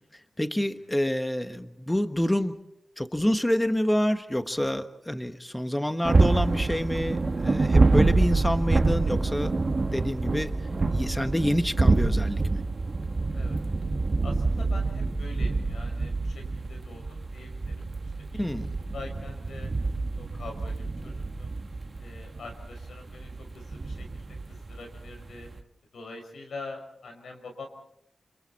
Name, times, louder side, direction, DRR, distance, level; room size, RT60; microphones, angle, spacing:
voice 1, 0.4-2.5 3.0-9.5 9.9-10.5 10.9-12.4 18.3-18.7, left 1 dB, 10° left, 9 dB, 1.3 m, -27 dB
sound 1, 6.0-25.6, right 3 dB, 40° right, 1.6 m, -27 dB
voice 2, 14.2-17.9 18.3-18.5 18.9-19.7 20.2-21.6 22.0-25.5 25.9-27.7, left 3 dB, 85° left, 3 dB, 5.7 m, -44 dB
28.0 x 27.5 x 4.2 m, 0.75 s
wide cardioid pair, 85°, 0 cm